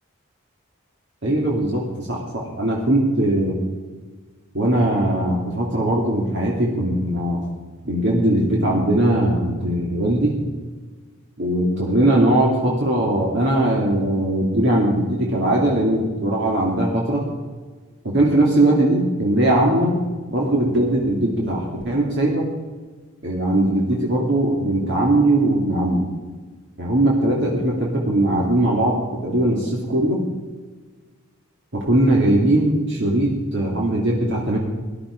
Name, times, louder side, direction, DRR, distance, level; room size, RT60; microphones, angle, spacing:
voice 1, 1.2-3.6 4.5-7.4 7.8-10.4 11.4-17.3 18.0-20.0 20.3-22.5 23.2-26.1 26.8-30.2 31.7-34.6, right 1 dB, 55° right, -3 dB, 2.4 m, -20 dB
19.0 x 11.5 x 5.1 m, 1.4 s
head